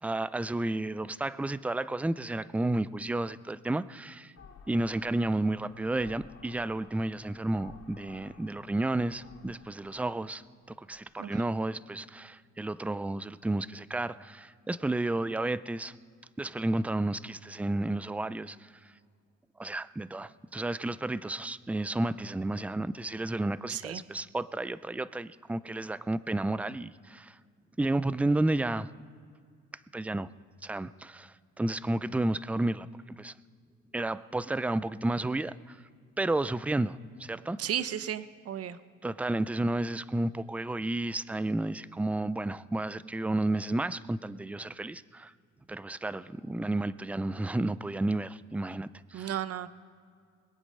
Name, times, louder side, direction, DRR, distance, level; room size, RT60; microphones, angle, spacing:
voice 1, 0.0-4.3 4.7-10.4 10.8-15.9 16.4-18.7 19.6-27.4 27.8-28.9 29.9-30.3 30.6-33.3 33.9-35.8 36.2-37.6 39.0-45.3 45.7-49.3, right 2 dB, 5° right, 17 dB, 0.4 m, -32 dB
sound 1, 4.4-11.1, left 4 dB, 50° left, 3.0 m, -54 dB
voice 2, 23.7-24.0 37.6-38.8 49.1-49.7, right 10 dB, 50° right, 14 dB, 0.7 m, -34 dB
21.5 x 8.3 x 5.5 m, 2.2 s
cardioid pair, 90°, 30 cm